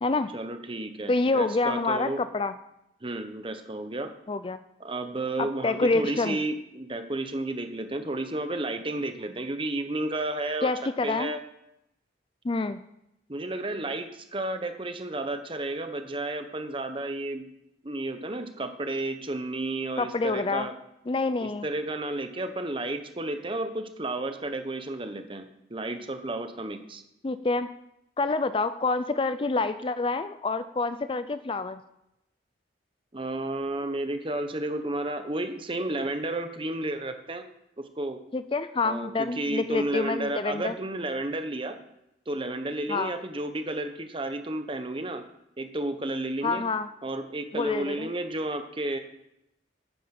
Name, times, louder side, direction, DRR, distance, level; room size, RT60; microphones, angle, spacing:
voice 1, 0.3-2.2 3.0-4.1 4.8-10.7 11.0-11.4 13.3-17.4 17.8-20.7 21.4-27.0 33.1-37.4 37.8-38.2 38.8-41.8 42.3-45.2 45.6-46.6 47.0-49.0, right 2 dB, 30° right, 7 dB, 1.1 m, -32 dB
voice 2, 1.1-2.5 4.3-4.6 5.4-6.4 10.6-11.3 12.4-12.8 20.0-20.7 21.1-21.7 27.2-27.7 28.2-31.8 38.3-40.7 42.9-43.1 46.4-46.9 47.5-48.1, left 3 dB, 30° left, 12 dB, 0.4 m, -27 dB
10.5 x 9.3 x 6.0 m, 0.83 s
head